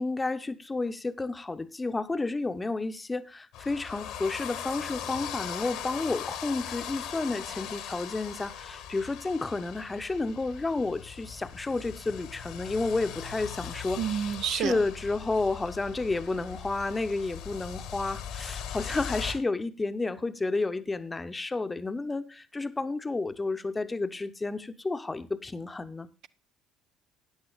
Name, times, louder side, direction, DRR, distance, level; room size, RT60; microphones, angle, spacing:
voice 1, 0.0-26.1, left 3 dB, 20° left, 0.8 m, -31 dB
sound 1, 3.5-19.3, left 8 dB, 60° left, 1.2 m, -40 dB
voice 2, 14.0-14.8, right 9 dB, 55° right, 0.4 m, -29 dB
14.0 x 9.8 x 2.4 m
figure-of-eight pair, 55°, 0 cm